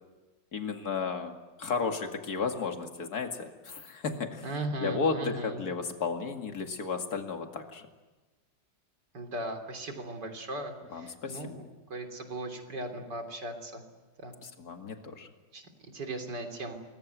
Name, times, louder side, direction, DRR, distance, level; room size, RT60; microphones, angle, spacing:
voice 1, 0.5-4.5 4.8-7.9 10.9-11.6 14.4-15.3, left 4 dB, 55° left, 5 dB, 2.7 m, -33 dB
voice 2, 4.4-5.7 9.1-13.8 14.2-14.3 15.5-16.7, right 1 dB, 70° right, 5 dB, 4.0 m, -38 dB
28.5 x 21.5 x 9.5 m, 1.2 s
omnidirectional pair, 1.9 m